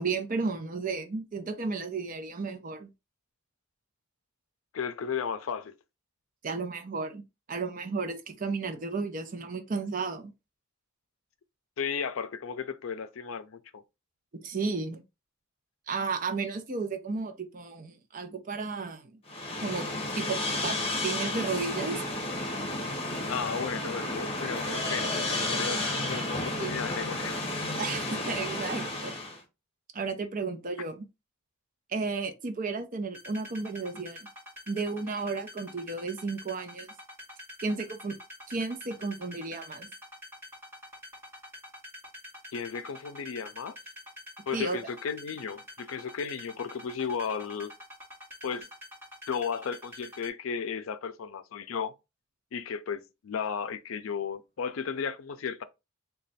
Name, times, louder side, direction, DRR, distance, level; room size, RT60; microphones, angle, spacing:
voice 1, 0.0-2.9 6.4-7.2 7.5-10.3 14.4-15.0 15.9-19.2 19.6-19.9 20.2-22.0 26.4-26.8 27.7-29.1 29.9-31.0 31.9-34.3 34.7-36.9 37.6-38.1 38.5-39.9 44.5-44.8, right 4 dB, 40° right, 0.6 m, -33 dB
voice 2, 4.7-5.7 11.8-13.8 23.3-27.4 42.5-43.7 44.5-47.7 48.4-48.7 49.3-51.9 52.5-55.6, left 6 dB, 80° left, 0.4 m, -34 dB
sound 1, 19.3-29.4, left 2 dB, 30° left, 0.9 m, -32 dB
sound 2, 33.1-50.3, left 1 dB, 10° right, 1.8 m, -46 dB
3.2 x 2.3 x 4.0 m
head